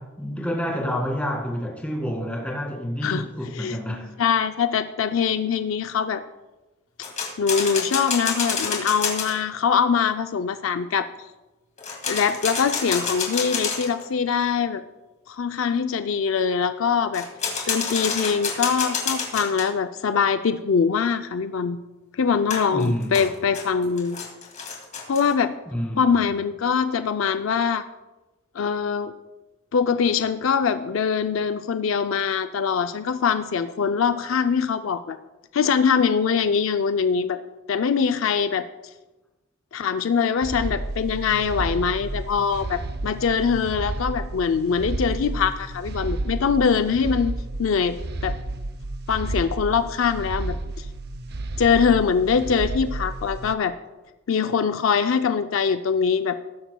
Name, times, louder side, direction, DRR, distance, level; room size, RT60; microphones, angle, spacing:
voice 1, 0.0-4.1 22.7-23.2 25.7-26.4, equal, 5° left, 2.1 m, -29 dB
voice 2, 4.2-6.2 7.4-11.1 12.1-14.8 15.3-17.2 17.7-21.8 22.2-24.2 25.1-25.5 25.9-27.8 28.6-29.1 29.7-35.2 35.5-37.4 37.7-38.6 39.7-47.3 47.6-48.0 48.2-48.3 49.1-50.9 51.6-53.7 54.3-56.4, left 6 dB, 70° left, 0.4 m, -23 dB
sound 1, 7.0-9.3 11.8-14.0 17.1-19.7 22.5-25.3, left 5 dB, 35° left, 2.2 m, -28 dB
sound 2, 40.4-53.5, right 2 dB, 50° right, 0.6 m, -31 dB
19.5 x 10.0 x 2.3 m
head